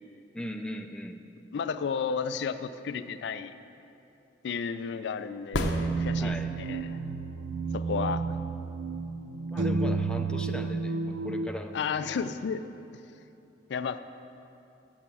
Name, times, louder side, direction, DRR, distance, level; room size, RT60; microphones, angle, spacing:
voice 1, 0.3-1.2 6.2-6.5 9.5-11.7, equal, 5° left, 4 dB, 0.4 m, -38 dB
voice 2, 1.5-3.5 4.4-7.0 7.7-8.4 11.7-12.6 12.9-13.0 13.7-14.0, left 6 dB, 70° left, 11 dB, 0.4 m, -33 dB
sound 1, 5.4-6.7 10.5-10.6, left 2 dB, 85° left, 0.7 m, -33 dB
sound 2, 5.5-11.5, right 4 dB, 80° right, 0.5 m, -31 dB
7.5 x 7.2 x 8.3 m, 2.9 s
head